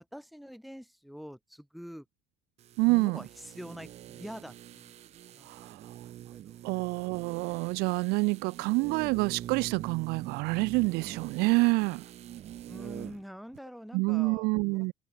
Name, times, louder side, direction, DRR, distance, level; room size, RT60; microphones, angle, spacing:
voice 1, 0.0-2.1 2.9-4.9 5.4-5.7 5.9-6.6 12.7-14.8, equal, ahead, 6.9 m, -46 dB
sound 1, 2.6-13.3 13.5-13.6, right 12 dB, 40° right, 3.5 m, -45 dB
voice 2, 2.8-3.2 5.4-5.9 6.6-12.0 13.9-14.9, right 26 dB, 80° right, 1.1 m, -27 dB
cardioid pair, 170°, 16 cm